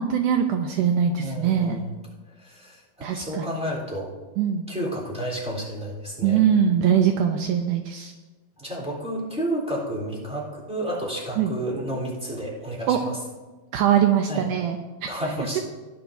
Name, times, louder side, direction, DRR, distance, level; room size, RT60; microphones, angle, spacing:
voice 1, 0.0-1.8 3.0-3.5 4.4-4.7 6.2-8.1 11.4-11.5 12.9-13.0 13.7-15.2 15.6-15.7, right 8 dB, 85° right, 5 dB, 1.8 m, -22 dB
voice 2, 1.2-1.8 2.4-4.1 4.7-6.4 8.6-13.2 14.3-14.4 15.1-15.6, right 1 dB, ahead, -4 dB, 3.1 m, -31 dB
18.5 x 11.0 x 2.7 m, 1.2 s
omnidirectional pair, 4.4 m